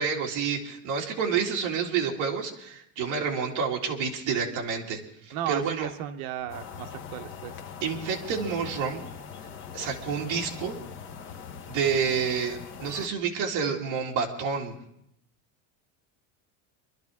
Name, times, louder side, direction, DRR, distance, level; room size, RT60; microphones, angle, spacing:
voice 1, 0.0-5.9 7.8-9.0 9.7-10.8 11.7-14.8, right 6 dB, 45° right, -2 dB, 2.4 m, -29 dB
voice 2, 5.3-7.6, right 10 dB, 75° right, 7 dB, 1.0 m, -34 dB
sound 1, 6.5-13.1, left 7 dB, 30° left, 1.0 m, -42 dB
26.0 x 12.0 x 3.6 m, 0.75 s
cardioid pair, 175°, 42 cm